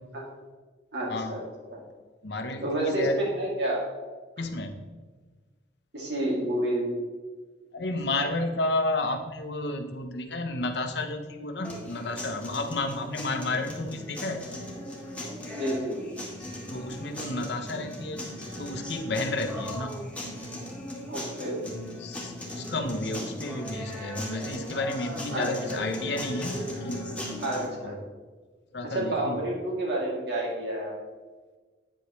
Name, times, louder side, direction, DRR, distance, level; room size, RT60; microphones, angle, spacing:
voice 1, 0.9-1.4 1.7-1.8 2.6-3.8 5.9-7.0 15.6-16.0 21.1-21.6 25.3-25.8 27.4-28.0 28.8-30.9, right 1 dB, 65° right, -4 dB, 2.6 m, -29 dB
voice 2, 2.2-3.2 4.4-4.7 7.7-14.4 16.7-18.3 18.6-19.9 22.0-27.0 28.7-29.4, left 2 dB, 65° left, 6 dB, 0.8 m, -31 dB
sound 1, 11.6-27.7, left 1 dB, 5° left, 1.5 m, -38 dB
8.8 x 8.0 x 3.1 m, 1.4 s
head